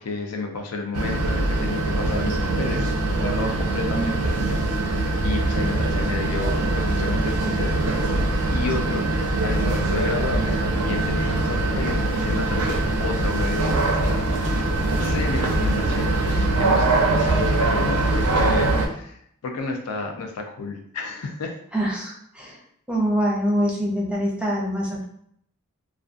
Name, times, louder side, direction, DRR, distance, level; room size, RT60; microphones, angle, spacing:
voice 1, 0.0-5.0 5.2-7.9 8.5-9.1 9.4-14.6 15.0-21.6, left 3 dB, 85° left, 3 dB, 0.5 m, -31 dB
sound 1, 0.9-18.9, right 2 dB, 80° right, 0.5 m, -22 dB
voice 2, 21.7-22.6 22.9-25.0, equal, 5° right, -3 dB, 0.5 m, -25 dB
2.4 x 2.2 x 2.4 m, 0.69 s
head